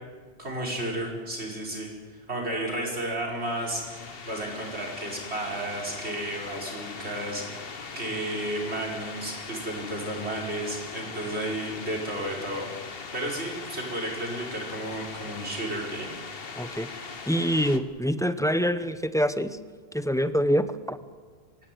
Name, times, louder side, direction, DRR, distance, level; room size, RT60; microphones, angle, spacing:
voice 1, 0.4-1.9 2.3-3.8 4.2-12.7 13.1-16.1, right 1 dB, 80° right, -1 dB, 5.4 m, -32 dB
sound 1, 3.4-17.8, left 5 dB, 60° left, 1.5 m, -40 dB
voice 2, 16.5-16.9 17.3-19.6 19.9-21.0, equal, 5° left, 11 dB, 0.9 m, -25 dB
23.5 x 16.0 x 9.4 m, 1.5 s
omnidirectional pair, 1.1 m